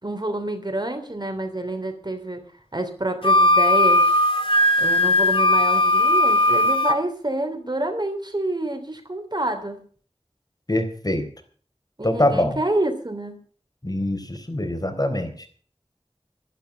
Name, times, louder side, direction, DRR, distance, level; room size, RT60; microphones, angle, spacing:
voice 1, 0.0-2.4 2.7-4.2 4.8-9.8 12.0-13.4, right 1 dB, 45° right, 7 dB, 3.2 m, -28 dB
Wind instrument woodwind instrument, 3.2-7.0, left 1 dB, 60° left, 2.2 m, -18 dB
voice 2, 10.7-11.2 12.0-12.6 13.8-15.5, left 1 dB, 40° left, 5 dB, 4.0 m, -24 dB
13.5 x 12.0 x 6.9 m, 0.43 s
wide cardioid pair, 40°, 10 cm